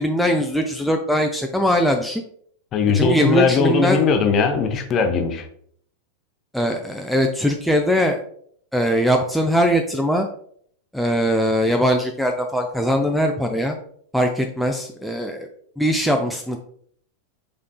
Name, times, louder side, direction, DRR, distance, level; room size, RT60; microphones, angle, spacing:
voice 1, 0.0-2.2 2.9-4.1 6.5-8.2 8.7-10.3 10.9-13.8 14.1-15.5 15.8-16.6, equal, ahead, 2 dB, 0.4 m, -21 dB
voice 2, 2.7-5.5, left 5 dB, 30° left, 6 dB, 0.7 m, -19 dB
5.7 x 3.7 x 2.2 m, 0.62 s
figure-of-eight pair, 90°, 0 cm